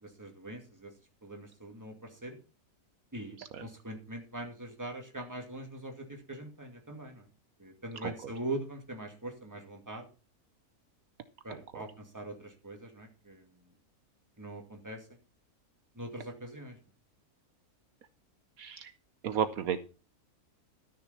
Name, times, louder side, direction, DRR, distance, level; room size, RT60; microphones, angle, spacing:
voice 1, 0.0-0.9 1.2-2.4 3.1-7.3 7.6-10.1 11.4-13.6 14.4-15.1 16.0-16.8, right 1 dB, 10° right, 3 dB, 2.2 m, -42 dB
voice 2, 11.5-11.8 18.6-18.9 19.2-19.8, right 8 dB, 70° right, 11 dB, 1.1 m, -34 dB
12.5 x 6.8 x 5.6 m, 0.35 s
omnidirectional pair, 1.6 m